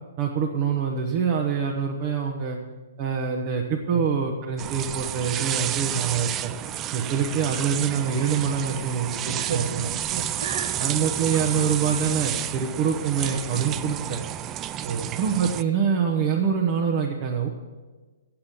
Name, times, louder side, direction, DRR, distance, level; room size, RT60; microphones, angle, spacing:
voice 1, 0.2-2.6 3.0-6.5 6.9-9.9 10.8-14.2 15.2-17.5, right 6 dB, 40° right, 0 dB, 1.1 m, -25 dB
sound 1, 4.6-15.6, right 11 dB, 25° right, 0.4 m, -31 dB
voice 2, 9.4-11.1 14.8-15.2, right 5 dB, 65° right, 7 dB, 1.2 m, -32 dB
8.6 x 7.9 x 8.3 m, 1.3 s
hypercardioid pair, 125°, 0 cm